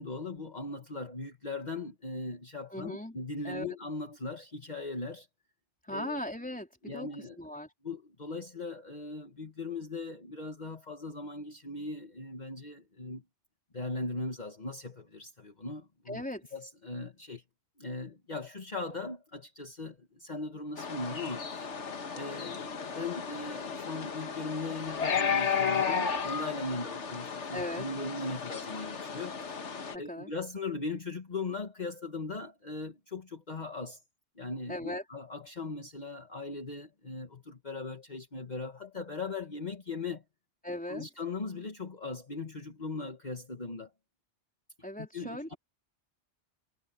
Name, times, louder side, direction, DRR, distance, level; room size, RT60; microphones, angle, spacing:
voice 1, 0.0-5.3 5.9-6.2 6.8-7.4 7.8-13.2 13.7-16.2 16.5-17.4 17.8-29.4 29.9-34.0 34.4-40.2 40.9-43.9 45.0-45.5, left 3 dB, 40° left, 1.8 m, -39 dB
voice 2, 2.7-3.2 3.4-3.8 5.8-7.1 7.4-7.7 16.1-16.4 27.5-27.9 29.9-30.3 34.7-35.0 40.6-41.0 44.8-45.6, left 1 dB, 5° left, 4.0 m, -38 dB
sound 1, 20.8-30.0, left 6 dB, 90° left, 1.7 m, -34 dB
omnidirectional pair, 1.2 m